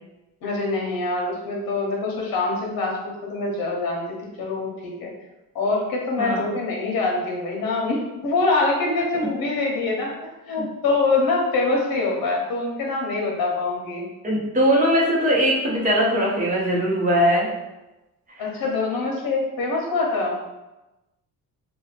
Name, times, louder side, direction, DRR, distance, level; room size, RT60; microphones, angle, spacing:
voice 1, 0.4-5.1 5.5-14.1 18.4-20.3, left 3 dB, 75° left, -1 dB, 1.0 m, -24 dB
voice 2, 6.2-6.5 14.2-17.5 18.3-18.5, equal, 20° right, -4 dB, 0.8 m, -20 dB
2.8 x 2.2 x 4.0 m, 1.0 s
cardioid pair, 170°, 36 cm